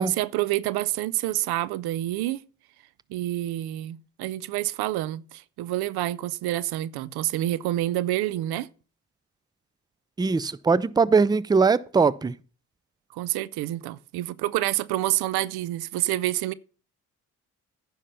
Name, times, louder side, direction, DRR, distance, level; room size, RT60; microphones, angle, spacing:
voice 1, 0.0-2.4 3.1-8.7 13.1-16.5, right 15 dB, 90° right, 0.5 m, -28 dB
voice 2, 10.2-12.3, right 4 dB, 10° right, 0.4 m, -21 dB
10.0 x 5.8 x 5.5 m
supercardioid pair, 60°, 37 cm